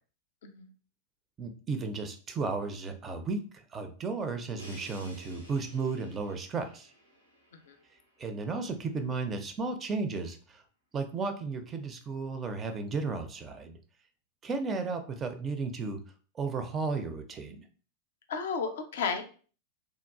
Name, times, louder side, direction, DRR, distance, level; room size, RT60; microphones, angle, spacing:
voice 1, 1.4-3.4 3.7-6.9 8.2-10.6 10.9-13.8 14.4-16.0 16.4-17.6, right 4 dB, 25° right, 7 dB, 0.4 m, -34 dB
Crash cymbal, 4.6-8.4, equal, 85° right, 0.8 m, -53 dB
voice 2, 18.3-19.3, left 5 dB, 60° left, 6 dB, 0.4 m, -33 dB
2.9 x 2.2 x 2.3 m, 0.40 s
figure-of-eight pair, 90°, 0 cm